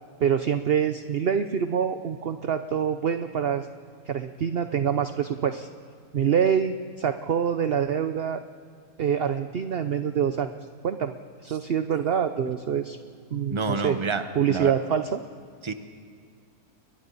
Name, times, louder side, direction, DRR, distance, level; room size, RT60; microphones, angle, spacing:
voice 1, 0.2-3.7 4.1-5.7 6.1-8.4 9.0-10.5 10.8-11.1 11.4-13.0 13.3-14.0 14.4-15.2, right 8 dB, 50° right, 9 dB, 0.8 m, -25 dB
voice 2, 13.5-14.7 15.6-15.7, right 4 dB, 20° right, 8 dB, 1.0 m, -28 dB
29.0 x 22.5 x 4.1 m, 2.2 s
omnidirectional pair, 1.6 m